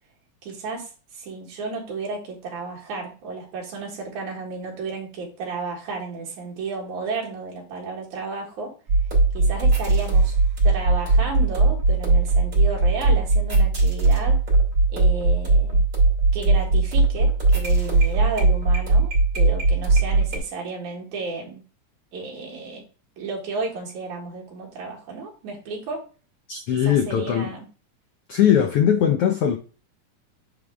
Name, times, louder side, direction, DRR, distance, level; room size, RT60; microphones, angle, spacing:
voice 1, 0.4-8.7 9.3-10.4 10.6-14.4 14.9-15.8 16.3-21.6 22.1-22.8 23.2-26.1 26.8-27.7, right 4 dB, 75° right, 3.2 m, -33 dB
sound 1, 8.9-20.4, right 3 dB, 50° right, 3.7 m, -19 dB
voice 2, 26.5-27.5 28.3-29.6, left 9 dB, 85° left, 1.3 m, -20 dB
8.9 x 3.5 x 3.4 m
omnidirectional pair, 3.4 m